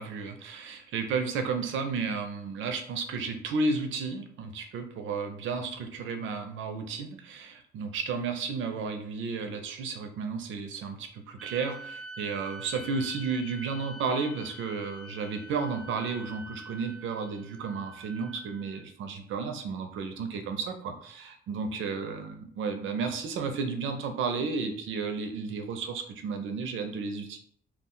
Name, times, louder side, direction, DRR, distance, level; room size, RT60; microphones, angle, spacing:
voice 1, 0.0-27.4, right 4 dB, 80° right, 6 dB, 0.5 m, -33 dB
sound 1, 11.4-18.9, right 1 dB, 5° left, 0.6 m, -46 dB
2.4 x 2.1 x 3.7 m, 0.62 s
cardioid pair, 90°, 20 cm